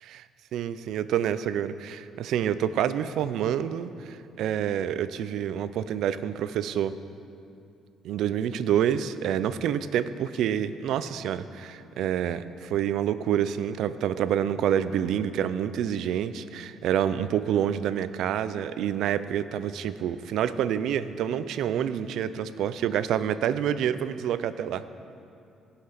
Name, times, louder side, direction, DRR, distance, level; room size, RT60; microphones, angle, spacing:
voice 1, 0.5-6.9 8.0-24.8, right 9 dB, 65° right, 13 dB, 0.4 m, -27 dB
16.0 x 5.8 x 5.9 m, 2.6 s
cardioid pair, 160°, 0 cm